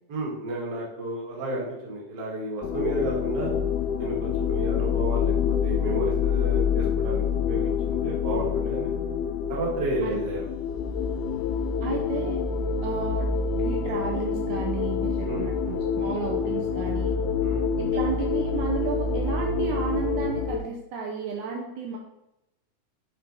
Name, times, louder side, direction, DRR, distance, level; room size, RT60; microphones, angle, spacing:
voice 1, 0.1-3.5 4.0-8.9 9.5-10.5 15.2-15.8 17.4-17.7, right 1 dB, 40° right, -4 dB, 1.9 m, -32 dB
sound 1, 2.6-20.6, left 6 dB, 80° left, 1.9 m, -27 dB
voice 2, 11.8-12.4 12.8-13.3 13.6-17.1 17.8-22.0, right 6 dB, 75° right, 0 dB, 2.1 m, -32 dB
7.7 x 4.3 x 4.0 m, 0.89 s
omnidirectional pair, 3.7 m